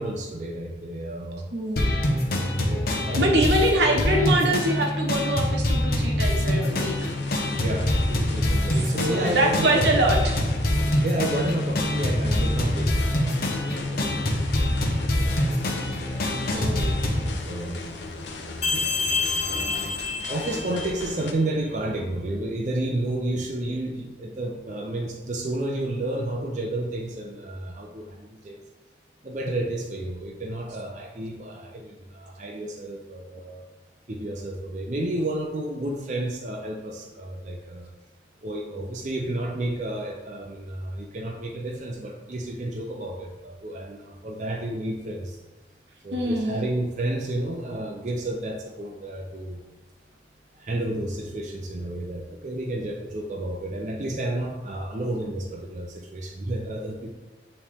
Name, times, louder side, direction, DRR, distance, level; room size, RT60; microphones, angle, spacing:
voice 1, 0.0-1.5 2.2-3.5 7.6-10.3 11.0-14.4 14.8-17.1 17.4-17.8 18.7-18.9 19.4-20.0 20.3-28.6 29.2-33.7 34.1-37.9 38.4-45.4 46.0-49.6 50.5-57.1, right 1 dB, 45° right, 1 dB, 0.5 m, -31 dB
voice 2, 1.5-1.9 3.2-7.1 9.1-10.4 16.5-16.9 46.1-46.6, right 1 dB, 85° right, 0 dB, 1.1 m, -24 dB
sound 1, 1.8-17.3, left 1 dB, 55° left, 0.8 m, -25 dB
sound 2, 6.6-21.3, left 2 dB, 90° left, 0.7 m, -37 dB
sound 3, 18.6-21.2, left 4 dB, 35° left, 1.0 m, -28 dB
8.7 x 3.2 x 3.5 m, 1.2 s
head